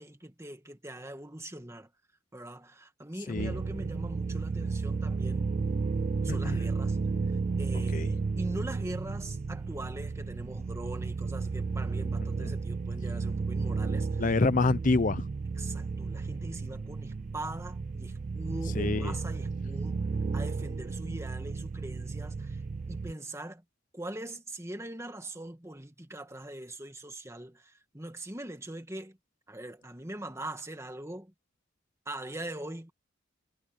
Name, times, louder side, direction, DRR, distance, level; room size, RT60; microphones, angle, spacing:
voice 1, 0.0-1.9 2.3-5.6 6.2-7.0 7.6-14.2 15.6-20.0 20.3-22.6 22.9-23.6 23.9-29.2 29.5-31.3 32.1-32.9, right 1 dB, 15° right, 1.8 m, -42 dB
sound 1, 3.4-23.1, right 4 dB, 35° right, 0.3 m, -33 dB
voice 2, 6.3-6.6 7.9-8.1 12.4-12.5 14.2-15.3 18.8-19.1, left 3 dB, 40° left, 0.5 m, -27 dB
head